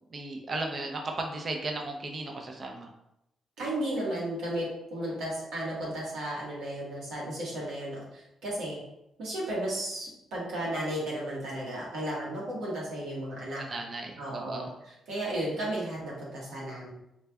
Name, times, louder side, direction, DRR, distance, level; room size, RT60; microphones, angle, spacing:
voice 1, 0.1-2.9 13.7-14.7, right 2 dB, 45° right, 2 dB, 0.6 m, -35 dB
voice 2, 3.6-8.8 9.2-13.6 14.2-16.9, right 1 dB, 90° right, -5 dB, 1.3 m, -34 dB
3.3 x 2.4 x 3.4 m, 0.84 s
cardioid pair, 80°, 0 cm